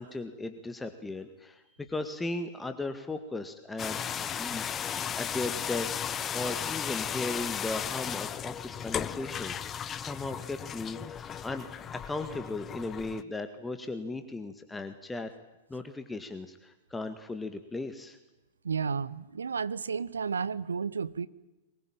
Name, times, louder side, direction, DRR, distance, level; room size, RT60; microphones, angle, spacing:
voice 1, 0.0-11.7 11.9-15.3 15.7-18.2, left 2 dB, 10° left, 1.9 m, -37 dB
sound 1, 3.8-13.2, left 8 dB, 25° left, 0.9 m, -35 dB
voice 2, 18.6-21.3, right 5 dB, 75° right, 1.0 m, -32 dB
23.5 x 21.0 x 8.9 m
figure-of-eight pair, 95°, 0 cm